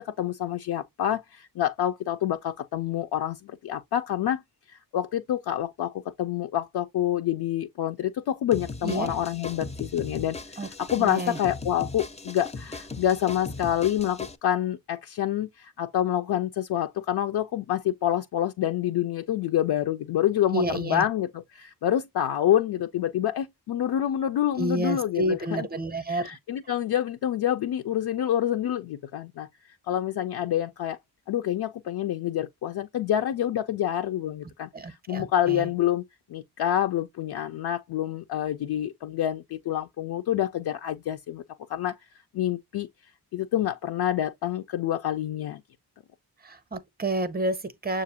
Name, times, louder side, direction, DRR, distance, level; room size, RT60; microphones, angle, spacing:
voice 1, 0.0-4.4 4.7-25.7 26.1-29.5 29.9-31.0 31.3-36.0 36.3-41.4 41.7-42.0 42.3-42.9 43.3-45.6, left 11 dB, 70° left, 0.5 m, -27 dB
sound 1, 8.5-14.4, left 3 dB, 15° left, 0.4 m, -38 dB
voice 2, 11.0-11.4 20.5-21.0 24.6-26.3 34.7-35.7 46.4-48.0, right 1 dB, 25° right, 0.6 m, -29 dB
6.6 x 2.5 x 2.7 m
cardioid pair, 70°, 40 cm